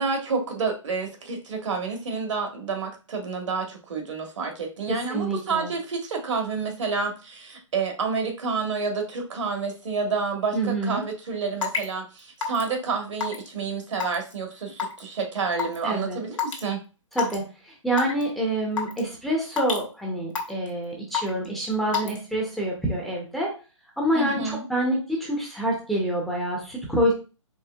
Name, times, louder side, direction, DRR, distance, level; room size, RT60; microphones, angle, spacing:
voice 1, 0.0-16.8 24.1-24.6, right 4 dB, 65° right, 3 dB, 1.2 m, -29 dB
voice 2, 4.9-5.7 10.5-11.0 15.8-16.2 17.1-23.5 24.0-27.1, right 1 dB, ahead, -3 dB, 0.6 m, -27 dB
Raindrop / Water tap faucet / Drip, 11.6-11.8 12.4-12.7 13.2-13.5 14.0-14.3 14.8-15.0 15.6-15.8 16.4-16.6 17.1-17.3 18.0-18.2 18.8-19.0 19.6-19.8 20.3-20.7 21.1-21.5 21.9-22.2, left 7 dB, 75° left, 1.2 m, -26 dB
4.5 x 3.0 x 2.3 m, 0.33 s
hypercardioid pair, 150°, 17 cm